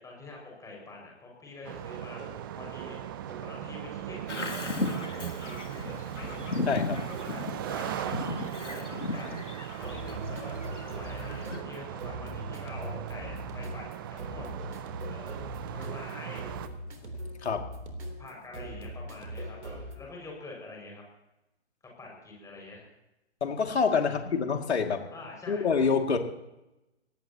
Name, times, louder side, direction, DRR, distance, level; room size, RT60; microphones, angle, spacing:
voice 1, 0.0-2.2 2.6-3.0 3.4-6.4 7.3-7.4 7.7-14.4 15.1-16.4 18.2-21.0 22.0-22.9 24.0-24.2 25.1-25.6, left 3 dB, 10° left, -1 dB, 5.8 m, -46 dB
sound 1, 1.6-16.7, right 12 dB, 20° right, 0.4 m, -38 dB
sound 2, 1.6-20.0, right 1 dB, 70° right, 3.6 m, -43 dB
Bird vocalization bird call bird song, 4.3-11.6, left 3 dB, 90° left, 2.4 m, -36 dB
voice 2, 6.7-7.0 17.0-17.1 17.4-17.7 23.4-25.1 25.5-26.2, left 5 dB, 65° left, 4 dB, 2.5 m, -27 dB
23.5 x 18.5 x 3.0 m, 0.95 s
figure-of-eight pair, 125°, 35 cm